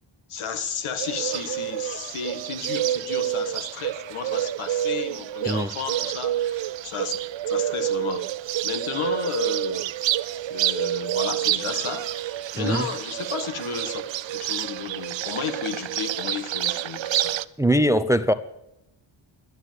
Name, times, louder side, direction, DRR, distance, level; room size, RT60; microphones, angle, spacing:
voice 1, 0.3-7.2 7.5-8.3 8.6-9.9 10.5-14.0 14.3-17.4, left 7 dB, 85° left, 9 dB, 1.6 m, -33 dB
Bird, 1.0-17.4, right 12 dB, 65° right, 0.6 m, -28 dB
voice 2, 12.6-12.9 17.6-18.3, equal, 5° right, 14 dB, 0.4 m, -21 dB
11.5 x 9.8 x 7.6 m, 0.87 s
wide cardioid pair, 145°, 49 cm